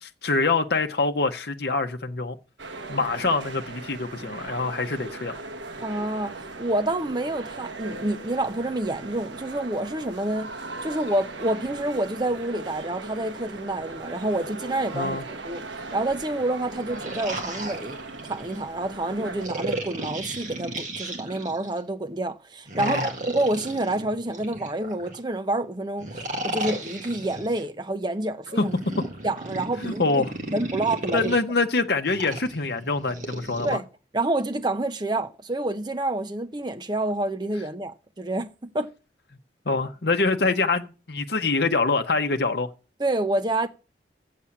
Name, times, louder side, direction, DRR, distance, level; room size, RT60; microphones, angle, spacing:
voice 1, 0.0-2.4 2.9-5.4 14.9-15.2 22.8-23.1 28.5-28.7 29.8-30.3 31.1-33.8 39.7-42.7, left 3 dB, 60° left, 0.9 m, -25 dB
sound 1, 2.6-19.5, right 3 dB, 80° right, 1.1 m, -38 dB
voice 2, 5.8-15.2 15.4-15.6 15.9-18.0 18.3-28.8 29.2-30.2 30.5-31.4 33.6-33.8 34.1-38.9 43.0-43.7, right 2 dB, 25° right, 0.7 m, -28 dB
sound 2, 16.7-18.6 19.4-21.8 22.7-25.2 26.0-27.6 28.6-31.4 32.1-33.8, right 2 dB, 40° right, 1.8 m, -34 dB
7.6 x 7.2 x 8.4 m
head